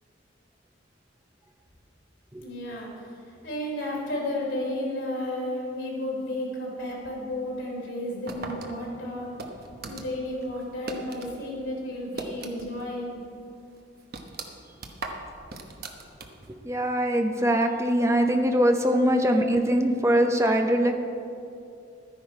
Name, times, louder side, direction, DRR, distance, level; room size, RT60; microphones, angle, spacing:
voice 1, 2.4-9.4 9.9-13.2, left 1 dB, 75° left, -3 dB, 3.4 m, -33 dB
sound 1, 8.3-11.4 11.7-12.9 13.2-13.3 13.7-16.6, right 2 dB, 55° right, 1.0 m, -39 dB
voice 2, 16.6-21.0, equal, 15° right, 4 dB, 0.7 m, -22 dB
12.5 x 10.0 x 4.7 m, 2.6 s
head